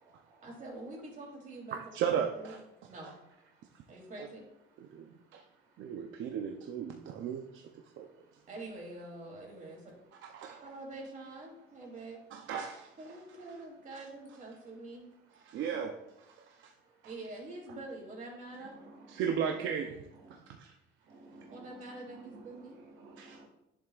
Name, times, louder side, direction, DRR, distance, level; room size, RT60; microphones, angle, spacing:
voice 1, 0.4-2.6 2.9-3.1 3.9-4.4 8.5-9.8 10.6-12.2 13.0-15.0 17.0-18.7 21.5-22.8, right 2 dB, 40° right, -2 dB, 3.2 m, -45 dB
voice 2, 1.7-2.6 4.2-4.3 4.8-5.4 5.8-7.6 8.0-8.1 10.2-10.7 12.3-12.9 13.9-14.0 15.5-16.6 19.1-20.0 20.3-20.7 23.2-23.4, right 7 dB, 70° right, 3 dB, 0.7 m, -36 dB
voice 3, 18.6-19.2 20.2-20.4 21.1-23.5, right 2 dB, 85° right, 0 dB, 1.9 m, -54 dB
10.5 x 7.3 x 2.5 m, 0.89 s
cardioid pair, 135°, 20 cm